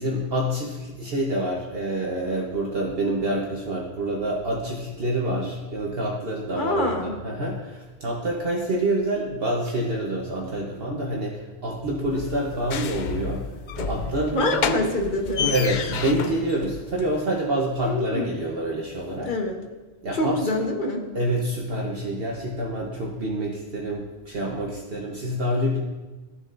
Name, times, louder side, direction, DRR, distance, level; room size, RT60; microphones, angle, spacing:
voice 1, 0.0-6.9 7.2-13.4 13.8-14.8 15.5-19.3 20.0-20.4 21.1-25.8, right 1 dB, 55° right, -3 dB, 1.2 m, -27 dB
voice 2, 6.5-7.1 14.3-15.5 17.8-18.4 19.2-19.6 20.1-21.0, left 1 dB, 45° left, 2 dB, 1.3 m, -26 dB
sound 1, 12.1-17.2, left 6 dB, 60° left, 0.5 m, -30 dB
14.0 x 7.1 x 2.6 m, 1.2 s
omnidirectional pair, 1.2 m